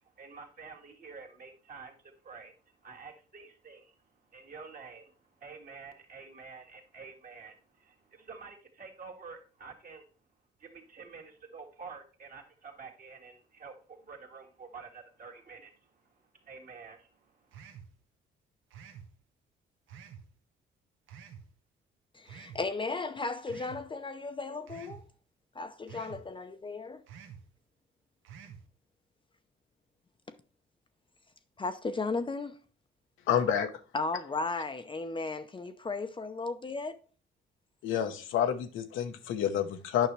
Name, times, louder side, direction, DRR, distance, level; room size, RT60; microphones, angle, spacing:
voice 1, 0.0-10.0 10.6-17.6, right 5 dB, 45° right, 1.9 m, -49 dB
sound 1, 17.5-17.9 18.7-19.1 19.9-20.3 21.1-21.5 22.2-22.6 23.5-23.8 24.7-25.0 25.9-26.2 27.1-27.4 28.2-28.6, right 7 dB, 85° right, 1.0 m, -48 dB
voice 2, 22.1-25.0 25.5-27.0 31.6-32.6 33.9-37.0, left 3 dB, 25° left, 0.6 m, -35 dB
voice 3, 33.3-33.7 37.8-40.1, left 9 dB, 85° left, 0.9 m, -29 dB
9.2 x 5.7 x 3.2 m
cardioid pair, 90°, 20 cm